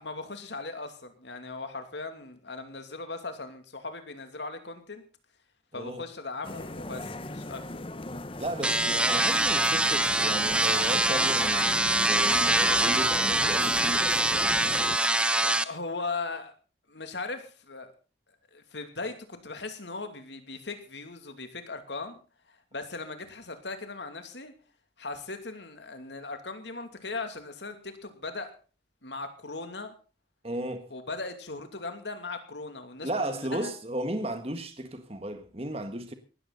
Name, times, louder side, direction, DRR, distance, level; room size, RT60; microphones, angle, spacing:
voice 1, 0.0-5.0 5.7-7.6 15.4-16.5 16.9-17.9 18.5-22.2 22.7-24.5 25.0-28.5 29.0-29.9 30.9-33.7, left 3 dB, 75° left, 2.7 m, -38 dB
voice 2, 5.7-6.0 8.4-14.1 30.4-30.9 33.0-36.1, right 1 dB, 30° right, 1.6 m, -34 dB
sound 1, 6.4-15.0, left 2 dB, 30° left, 0.9 m, -38 dB
sound 2, 8.6-15.6, right 2 dB, 5° right, 0.6 m, -24 dB
19.0 x 13.5 x 4.1 m
head